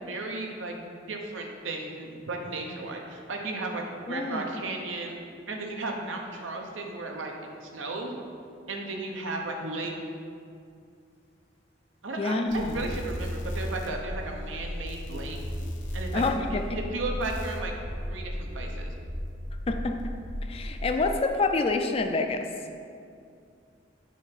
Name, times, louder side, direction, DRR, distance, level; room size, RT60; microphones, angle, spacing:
voice 1, 0.1-5.2 5.5-7.3 7.6-8.1 8.7-10.0 12.0-15.4 15.9-16.2 16.7-17.7 18.0-18.9, right 2 dB, 85° right, 1 dB, 0.8 m, -35 dB
voice 2, 4.1-4.5 12.2-12.8 16.1-16.8 19.7-20.1 20.5-22.5, left 3 dB, 30° left, 6 dB, 0.3 m, -27 dB
sound 1, 12.5-21.3, equal, 75° left, 1.0 m, -35 dB
6.2 x 3.5 x 5.7 m, 2.3 s
head